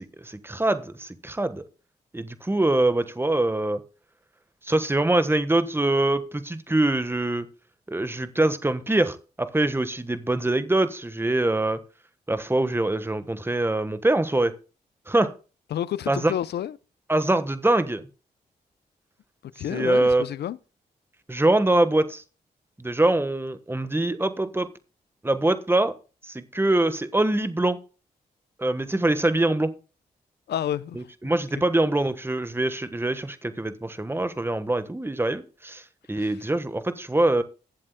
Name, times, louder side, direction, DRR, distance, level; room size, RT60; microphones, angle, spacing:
voice 1, 0.2-1.6 2.1-3.8 4.6-7.5 7.9-11.8 12.3-14.5 15.1-15.3 16.1-16.3 17.1-18.1 19.7-20.2 21.3-22.2 22.8-24.7 25.2-25.9 26.3-27.8 28.6-29.7 30.9-35.8 36.1-37.4, right 2 dB, 15° right, 1.2 m, -24 dB
voice 2, 15.7-16.8 19.6-20.6 30.5-31.1 31.5-31.6, left 11 dB, 75° left, 0.5 m, -29 dB
22.0 x 7.4 x 2.2 m
supercardioid pair, 40°, 18 cm